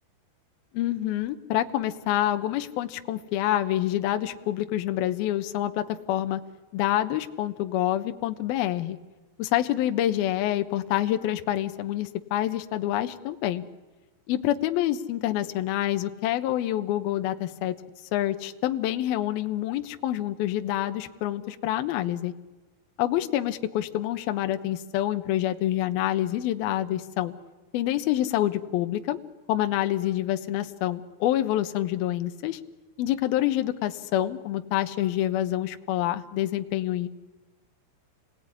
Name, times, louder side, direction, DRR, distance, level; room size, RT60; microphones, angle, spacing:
voice 1, 0.7-6.4 6.7-9.0 9.4-13.6 14.3-17.8 18.1-22.3 23.0-27.3 27.7-29.2 29.5-32.6 33.0-37.1, left 13 dB, 75° left, 7 dB, 2.3 m, -27 dB
28.0 x 19.0 x 9.8 m, 1.2 s
omnidirectional pair, 5.7 m